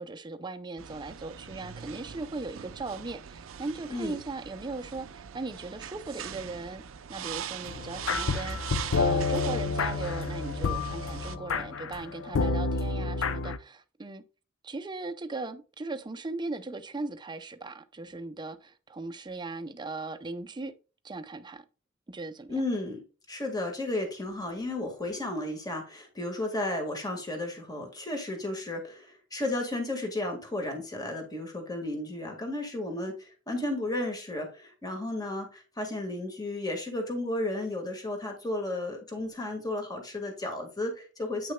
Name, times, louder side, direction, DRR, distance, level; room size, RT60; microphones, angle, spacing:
voice 1, 0.0-6.8 7.1-14.2 14.6-20.7 21.0-21.6 22.1-22.6, right 3 dB, 20° right, 0.6 m, -38 dB
sound 1, 0.8-11.4, right 6 dB, 85° right, 0.5 m, -40 dB
sound 2, 7.7-13.6, left 4 dB, 85° left, 0.6 m, -29 dB
voice 2, 22.5-23.0 23.3-41.5, left 1 dB, 20° left, 1.7 m, -33 dB
8.7 x 6.1 x 2.2 m
head